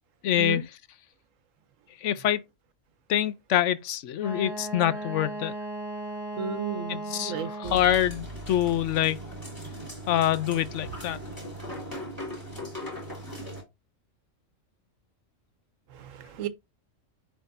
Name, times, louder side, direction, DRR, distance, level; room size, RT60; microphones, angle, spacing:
voice 1, 0.2-0.6 2.0-2.4 3.1-5.5 6.9-9.2 10.1-11.2, left 11 dB, 75° left, 0.9 m, -25 dB
Wind instrument woodwind instrument, 4.2-7.9, right 1 dB, 20° right, 1.3 m, -36 dB
voice 2, 6.4-7.8 15.9-16.5, right 7 dB, 85° right, 1.2 m, -34 dB
sound 1, 7.6-13.6, equal, 15° left, 2.9 m, -39 dB
10.5 x 3.7 x 2.6 m
omnidirectional pair, 1.3 m